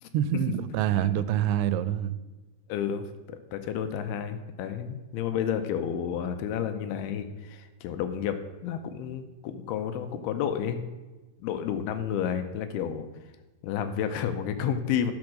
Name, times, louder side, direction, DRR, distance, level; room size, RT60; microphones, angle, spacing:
voice 1, 0.1-2.2, right 11 dB, 90° right, 2.6 m, -26 dB
voice 2, 2.7-10.9 11.4-13.1 13.6-15.1, left 8 dB, 85° left, 2.5 m, -31 dB
10.5 x 5.3 x 6.2 m
omnidirectional pair, 4.6 m